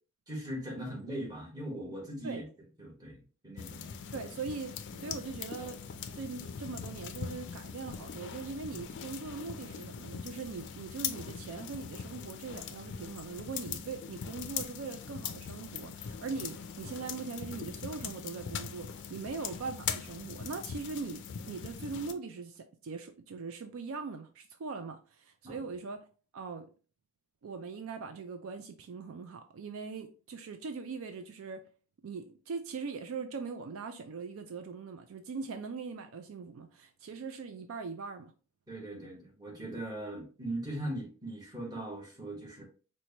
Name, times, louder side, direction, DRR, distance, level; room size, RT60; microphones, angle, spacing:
voice 1, 0.3-2.4 2.8-3.9 4.9-5.1 25.4-25.6 38.7-42.6, right 1 dB, 20° right, 1.2 m, -40 dB
sound 1, 3.6-22.1, left 7 dB, 55° left, 0.4 m, -41 dB
voice 2, 4.1-26.1 26.3-26.7 27.4-31.6 32.0-38.3, right 4 dB, 70° right, 0.4 m, -41 dB
4.4 x 2.2 x 2.8 m
head